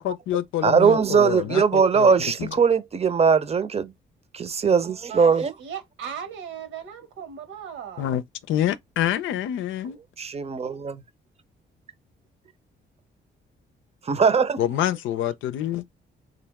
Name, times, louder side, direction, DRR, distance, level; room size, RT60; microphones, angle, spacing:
voice 1, 0.0-2.1 2.4-2.5 8.0-10.0 14.6-15.8, left 11 dB, 80° left, 0.5 m, -27 dB
voice 2, 0.6-3.9 4.3-5.5 10.2-11.0 14.0-14.6, right 6 dB, 30° right, 0.7 m, -20 dB
voice 3, 5.1-8.0, right 8 dB, 85° right, 1.4 m, -37 dB
3.9 x 3.0 x 3.5 m
cardioid pair, 90°, 20 cm